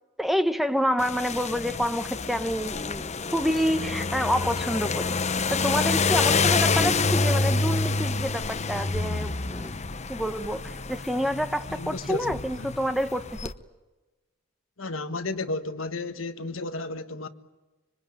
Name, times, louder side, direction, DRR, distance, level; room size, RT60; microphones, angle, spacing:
voice 1, 0.2-5.1 5.5-9.8 10.1-13.5, equal, ahead, 1.1 m, -28 dB
sound 1, 1.0-13.5, left 4 dB, 35° left, 0.9 m, -27 dB
voice 2, 11.7-12.7 14.8-17.3, left 2 dB, 75° left, 1.5 m, -33 dB
26.0 x 23.5 x 9.0 m
head